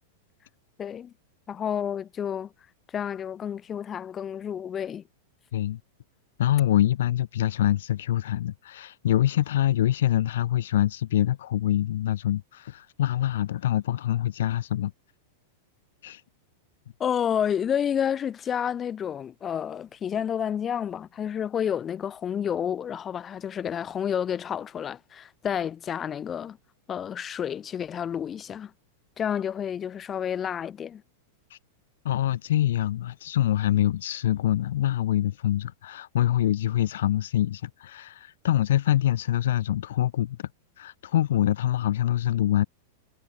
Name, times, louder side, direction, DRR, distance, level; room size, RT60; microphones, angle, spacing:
voice 1, 0.8-1.1 1.5-2.5 2.9-5.0 17.0-26.6 26.9-28.7 29.2-31.0, left 8 dB, 25° left, 1.8 m, -30 dB
voice 2, 6.4-14.9 16.0-16.2 31.5-31.6 32.0-40.4 40.8-42.6, left 12 dB, 75° left, 0.7 m, -25 dB
hypercardioid pair, 115°, 0 cm